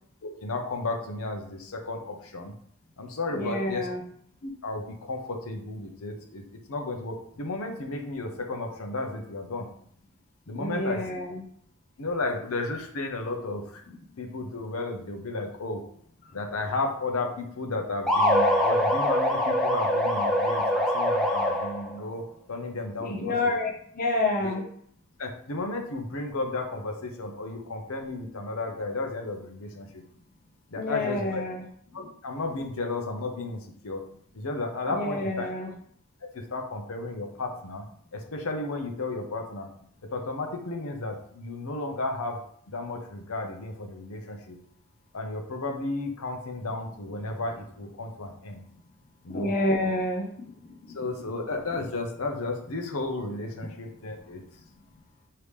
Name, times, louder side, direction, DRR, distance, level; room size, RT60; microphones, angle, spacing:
voice 1, 0.4-2.5 3.0-3.9 4.4-9.7 10.5-11.0 12.0-13.8 14.2-15.8 16.3-23.5 24.4-24.5 25.2-30.0 30.7-31.4 31.9-34.0 34.3-35.5 36.3-37.8 38.1-39.7 40.1-42.4 42.7-44.6 45.1-48.6 49.2-49.5 50.9-54.4, left 2 dB, 75° left, 3 dB, 0.7 m, -33 dB
voice 2, 3.3-4.0 10.5-11.4 13.9-14.0 23.0-24.7 30.8-31.6 31.9-32.1 34.9-35.7 49.3-51.0, left 2 dB, 40° left, 0 dB, 0.6 m, -29 dB
sound 1, 18.1-21.9, left 1 dB, 5° left, 0.8 m, -24 dB
5.0 x 2.8 x 3.2 m, 0.64 s
head